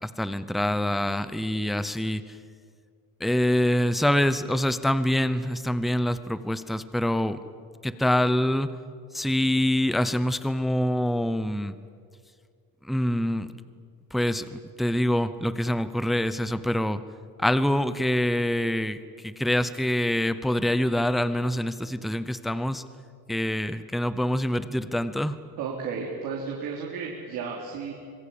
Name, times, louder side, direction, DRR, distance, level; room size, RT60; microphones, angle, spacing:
voice 1, 0.0-2.4 3.2-7.4 7.8-8.7 9.1-11.7 12.8-13.5 14.1-17.0 17.4-22.8 23.3-25.4, left 1 dB, ahead, 13 dB, 0.6 m, -25 dB
voice 2, 25.6-27.9, right 5 dB, 60° right, -2 dB, 3.9 m, -33 dB
25.5 x 22.0 x 8.7 m, 2.1 s
cardioid pair, 165°, 37 cm